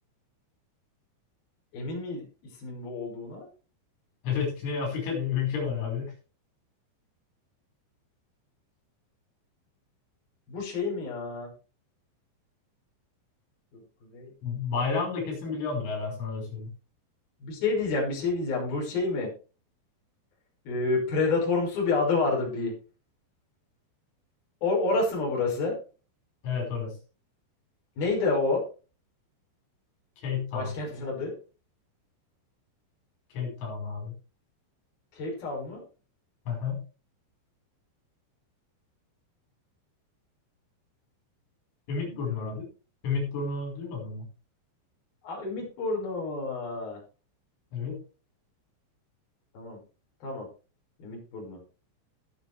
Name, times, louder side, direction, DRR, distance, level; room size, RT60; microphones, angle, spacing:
voice 1, 1.7-2.3 2.6-3.5 10.5-11.5 14.0-14.3 17.4-19.3 20.7-22.7 24.6-25.8 28.0-28.6 30.5-31.3 35.1-35.8 42.1-42.6 45.2-47.0 49.5-49.8 50.2-50.5 51.0-51.6, left 3 dB, 50° left, -1 dB, 7.6 m, -29 dB
voice 2, 4.2-6.1 14.4-16.7 26.4-27.0 30.2-30.7 33.3-34.1 36.5-36.9 41.9-42.7 43.0-44.3 47.7-48.0, left 5 dB, 75° left, 1 dB, 7.7 m, -31 dB
18.5 x 8.3 x 3.5 m, 0.34 s
omnidirectional pair, 5.6 m